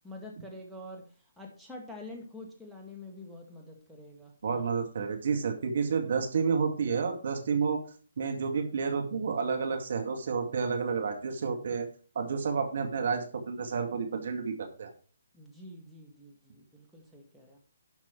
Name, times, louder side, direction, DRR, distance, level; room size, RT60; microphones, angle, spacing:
voice 1, 0.0-1.1 1.4-4.6 15.3-17.6, left 1 dB, ahead, -3 dB, 1.9 m, -46 dB
voice 2, 4.4-7.8 8.2-11.9 12.2-14.9, right 5 dB, 55° right, 4 dB, 2.2 m, -30 dB
11.5 x 6.0 x 4.6 m, 0.41 s
figure-of-eight pair, 135°, 0 cm